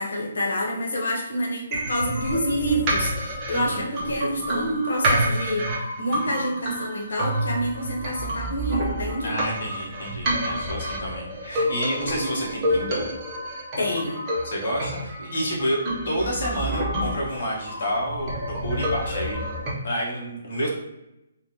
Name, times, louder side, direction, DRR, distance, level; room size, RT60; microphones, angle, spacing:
voice 1, 0.0-5.7 6.0-9.3 13.8-14.2, equal, 85° left, 0 dB, 0.9 m, -27 dB
sound 1, 1.7-19.7, right 1 dB, 15° right, 0.6 m, -28 dB
voice 2, 3.5-3.9 9.2-13.1 14.4-18.3 18.6-19.4 19.8-20.7, equal, 50° left, -3 dB, 1.0 m, -29 dB
3.4 x 2.2 x 2.8 m, 0.90 s
hypercardioid pair, 180°, 0 cm